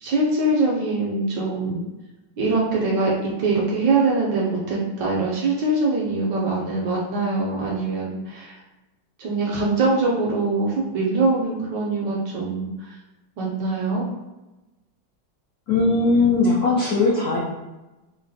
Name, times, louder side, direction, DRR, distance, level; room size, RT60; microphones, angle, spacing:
voice 1, 0.0-1.8 2.4-3.1 3.4-8.5 9.2-13.0 13.4-14.1, right 3 dB, 75° right, -3 dB, 1.0 m, -23 dB
voice 2, 15.7-17.4, left 3 dB, 90° left, -5 dB, 0.8 m, -19 dB
3.7 x 2.1 x 2.6 m, 1.1 s
omnidirectional pair, 2.3 m